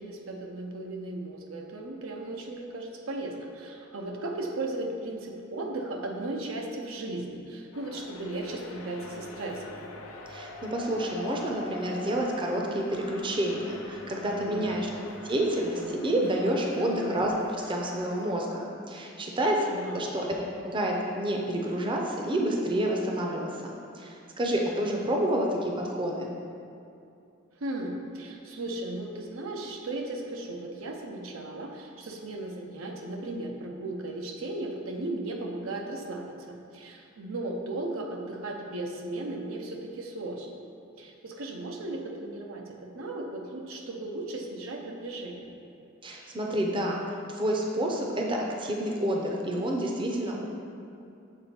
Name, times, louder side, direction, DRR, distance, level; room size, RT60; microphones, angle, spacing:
voice 1, 0.0-9.7 14.4-14.9 16.8-17.1 19.6-20.1 27.5-40.5 41.0-45.5, right 2 dB, 85° right, 1 dB, 0.7 m, -36 dB
sound 1, 7.7-18.3, left 2 dB, 85° left, 0.6 m, -44 dB
voice 2, 10.3-14.9 15.2-17.3 17.7-19.7 19.9-20.4 20.6-26.3 46.0-47.0 47.3-50.4, right 1 dB, 25° right, 0 dB, 0.6 m, -29 dB
7.0 x 3.9 x 4.3 m, 2.6 s
head